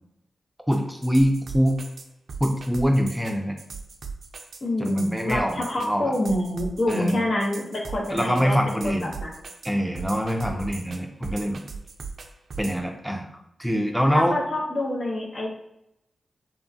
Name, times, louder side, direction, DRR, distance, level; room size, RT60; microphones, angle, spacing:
voice 1, 0.7-1.8 2.4-3.6 4.8-6.1 6.9-7.2 8.1-9.1 9.6-11.6 12.6-13.3 13.6-14.4, equal, 5° right, 2 dB, 0.4 m, -24 dB
sound 1, 0.7-12.8, right 5 dB, 75° right, 0.3 m, -38 dB
voice 2, 4.6-8.6 8.8-9.3 10.4-10.7 14.1-15.5, left 1 dB, 65° left, -1 dB, 0.7 m, -27 dB
2.9 x 2.2 x 2.6 m, 0.80 s
cardioid pair, 55°, 0 cm